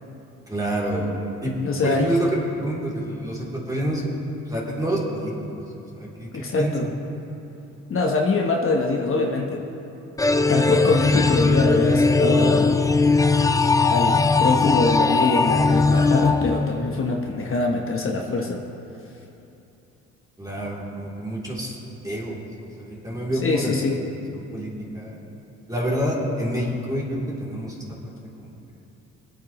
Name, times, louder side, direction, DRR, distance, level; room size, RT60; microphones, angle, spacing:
voice 1, 0.5-1.1 1.4-1.5 1.8-4.0 4.5-5.6 6.0-6.9 20.4-21.8 22.0-23.8 24.3-24.7 24.9-25.2 25.7-28.5, right 1 dB, 10° right, -5 dB, 3.1 m, -28 dB
voice 2, 1.6-2.1 6.3-6.9 7.9-9.6 10.5-12.8 13.9-18.6 23.4-24.0, left 3 dB, 45° left, 1 dB, 1.2 m, -24 dB
sound 1, 10.2-17.2, left 3 dB, 10° left, 0.5 m, -19 dB
25.0 x 8.8 x 3.1 m, 2.9 s
cardioid pair, 90°, 30 cm